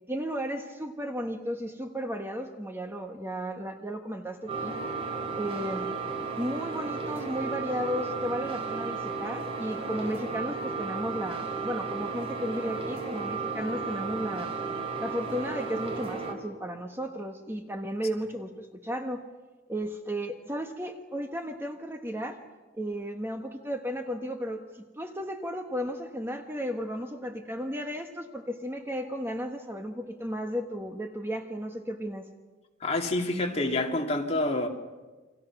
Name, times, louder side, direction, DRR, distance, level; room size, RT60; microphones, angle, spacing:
voice 1, 0.1-4.7 5.3-5.9 6.4-14.5 15.0-19.2 19.7-22.4 22.8-32.3, equal, 10° right, 1.3 m, -34 dB
sound 1, 4.5-16.4, right 4 dB, 30° right, 3.1 m, -34 dB
voice 2, 32.8-34.7, left 2 dB, 35° left, 2.5 m, -27 dB
29.5 x 24.5 x 6.0 m
head